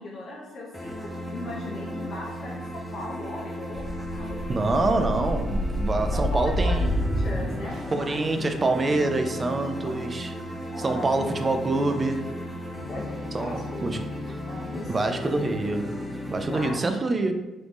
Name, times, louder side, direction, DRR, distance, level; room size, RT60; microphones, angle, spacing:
voice 1, 0.0-4.6 6.1-8.3 9.8-11.3 12.9-13.8 14.1-14.9 16.5-17.0, left 1 dB, 55° left, -4 dB, 0.6 m, -38 dB
sound 1, 0.7-16.7, left 1 dB, 5° left, 0.6 m, -35 dB
sound 2, 3.8-8.1, equal, 85° right, 1.4 m, -28 dB
voice 2, 4.5-6.9 7.9-10.3 10.8-12.3 13.3-14.0 14.3-14.4 14.9-15.9 16.3-17.3, right 2 dB, 30° right, 7 dB, 0.4 m, -26 dB
3.4 x 2.5 x 3.0 m, 1.1 s
cardioid pair, 90°, 0 cm